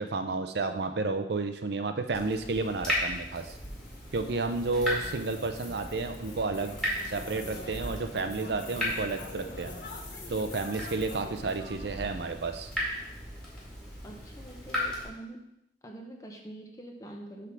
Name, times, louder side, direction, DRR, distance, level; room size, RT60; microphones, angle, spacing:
voice 1, 0.0-3.6 4.1-6.8 7.1-9.7 10.3-12.7, right 3 dB, 70° right, 7 dB, 0.6 m, -31 dB
Water tap faucet / Drip, 2.1-15.1, equal, 5° left, 2.1 m, -37 dB
sound 1, 3.3-11.6, left 4 dB, 45° left, 1.6 m, -51 dB
sound 2, 4.9-12.3, left 1 dB, 60° left, 0.9 m, -45 dB
voice 2, 14.0-15.4 15.8-17.5, right 1 dB, 20° left, 1 dB, 1.0 m, -45 dB
8.1 x 3.7 x 6.0 m, 0.83 s
head